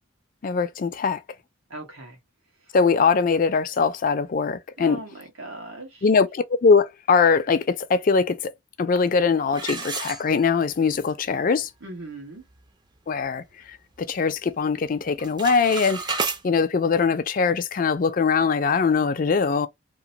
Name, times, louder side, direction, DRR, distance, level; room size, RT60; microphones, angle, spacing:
voice 1, 0.4-1.2 2.7-5.0 6.0-8.5 8.8-11.7 13.1-13.4 14.0-16.0 16.4-19.7, left 5 dB, 40° left, 0.4 m, -21 dB
voice 2, 1.7-2.2 4.8-6.1 11.8-12.4, right 2 dB, 85° right, 1.3 m, -39 dB
sound 1, 9.5-10.8 11.3-11.4 11.9-12.0 12.4-12.7 13.1-14.3 14.5-14.9 15.1-16.4, right 4 dB, 20° right, 0.4 m, -31 dB
2.9 x 2.0 x 2.7 m
head